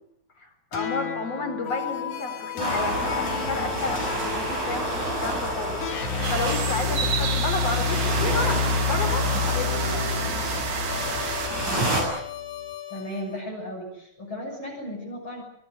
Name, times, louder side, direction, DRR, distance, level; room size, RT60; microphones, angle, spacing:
voice 1, 0.4-10.1, left 2 dB, 55° left, 7 dB, 5.3 m, -32 dB
sound 1, 0.7-13.2, left 6 dB, 90° left, 3.9 m, -30 dB
sound 2, 2.6-12.0, right 1 dB, 90° right, 8.9 m, -29 dB
sound 3, 6.2-11.5, right 7 dB, 55° right, 2.9 m, -31 dB
voice 2, 12.9-15.4, equal, 40° left, -3 dB, 7.6 m, -35 dB
25.5 x 22.0 x 8.1 m, 0.74 s
omnidirectional pair, 3.3 m